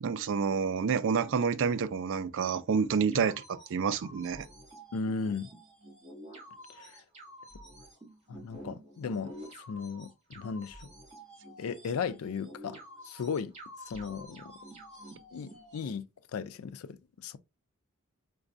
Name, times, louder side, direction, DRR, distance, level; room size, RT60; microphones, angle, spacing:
voice 1, 0.0-4.5, right 6 dB, 60° right, 0.4 m, -29 dB
sound 1, 3.1-15.9, equal, 30° right, 1.9 m, -49 dB
voice 2, 4.9-5.5 6.7-7.0 8.3-9.3 9.7-10.9 11.6-12.8 13.0-13.5 13.9-14.5 15.3-16.0 16.3-17.4, left 5 dB, 75° left, 0.4 m, -36 dB
4.8 x 2.3 x 2.5 m
head